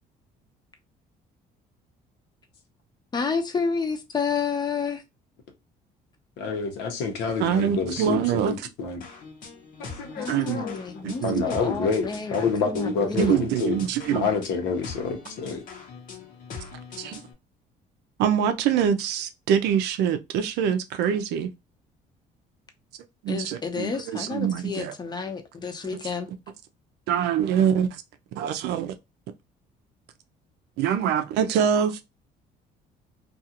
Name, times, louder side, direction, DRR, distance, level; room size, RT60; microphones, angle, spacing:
voice 1, 3.1-5.0 10.2-13.4 23.3-26.3, left 5 dB, 25° left, 0.6 m, -30 dB
voice 2, 6.4-9.1 9.9-13.8 14.1-15.6, left 5 dB, 85° left, 0.9 m, -28 dB
voice 3, 7.4-8.5 10.3-10.6 11.0-11.4 13.2-14.3 17.0-17.2 18.2-21.5 23.2-24.9 27.1-28.0 28.4-29.0 30.8-32.0, right 8 dB, 80° right, 0.5 m, -24 dB
sound 1, 9.0-17.3, left 4 dB, 55° left, 0.8 m, -42 dB
2.4 x 2.4 x 2.8 m
cardioid pair, 110°, 17 cm